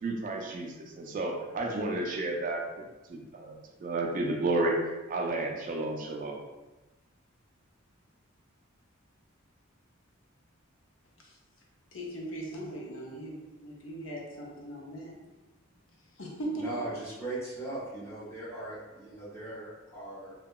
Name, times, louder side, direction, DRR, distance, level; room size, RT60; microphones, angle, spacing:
voice 1, 0.0-4.8 5.1-6.4, right 2 dB, 40° right, 0 dB, 0.3 m, -32 dB
voice 2, 11.9-13.4 13.6-15.2 16.2-16.7, right 1 dB, 70° left, -2 dB, 0.6 m, -39 dB
voice 3, 16.6-20.3, right 2 dB, 15° left, -8 dB, 0.9 m, -39 dB
2.8 x 2.2 x 2.2 m, 1.1 s
head